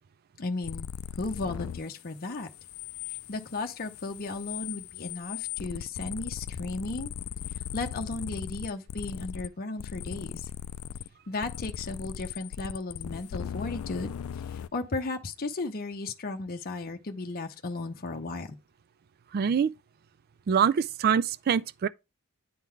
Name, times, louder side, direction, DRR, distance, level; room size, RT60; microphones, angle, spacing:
voice 1, 0.4-0.9 1.1-2.5 3.1-7.1 7.7-10.5 11.3-18.6, left 3 dB, 45° left, 0.7 m, -35 dB
sound 1, 0.6-1.9 2.2-9.5 9.8-11.1 11.4-14.7, left 9 dB, 75° left, 0.3 m, -38 dB
voice 2, 19.3-19.7 20.5-21.9, right 7 dB, 45° right, 0.3 m, -24 dB
9.4 x 3.8 x 4.5 m
head